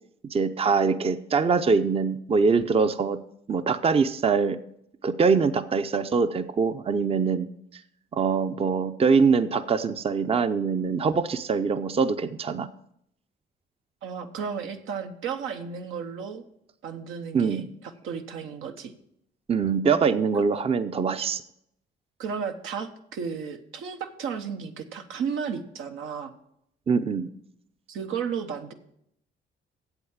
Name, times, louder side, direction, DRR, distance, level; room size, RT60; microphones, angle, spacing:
voice 1, 0.3-3.2 3.5-4.6 5.0-7.5 8.1-12.7 17.3-17.7 19.5-21.4 26.9-27.3, right 5 dB, 30° right, 12 dB, 0.5 m, -23 dB
voice 2, 14.0-16.4 16.8-18.9 22.2-26.3 27.9-28.7, right 6 dB, 85° right, 6 dB, 1.0 m, -33 dB
8.1 x 7.9 x 7.2 m, 0.74 s
cardioid pair, 90°, 20 cm